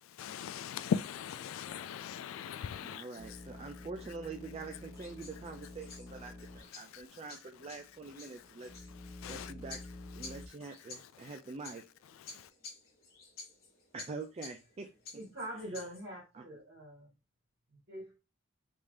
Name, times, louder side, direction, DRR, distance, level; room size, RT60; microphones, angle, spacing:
voice 1, 0.1-3.4 6.8-7.2 8.4-8.5 9.1-9.5 10.2-10.4 11.2-11.3 12.2-12.5, left 7 dB, 85° left, 0.3 m, -39 dB
voice 2, 2.8-8.7 9.3-9.8 10.2-11.8 13.9-15.2 15.6-15.8 16.3-16.4, right 4 dB, 30° right, 0.3 m, -45 dB
sound 1, 3.2-6.7 7.0-7.1 7.7-10.5, left 2 dB, ahead, 0.8 m, -49 dB
sound 2, 5.0-16.1, left 4 dB, 50° left, 1.2 m, -52 dB
voice 3, 15.1-17.1 17.9-18.2, right 1 dB, 60° right, 2.0 m, -43 dB
3.5 x 2.7 x 3.3 m
head